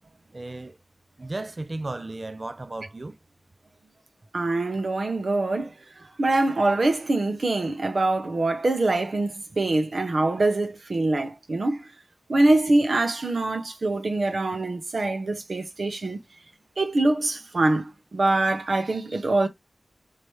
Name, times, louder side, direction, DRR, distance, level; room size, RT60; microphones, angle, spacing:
voice 1, 0.3-0.8 1.2-3.1, right 2 dB, 50° right, 0.5 m, -34 dB
voice 2, 4.3-5.7 6.2-11.8 12.3-16.2 16.8-19.5, right 2 dB, 75° right, 0.9 m, -24 dB
3.2 x 2.8 x 4.6 m
cardioid pair, 40°, 0 cm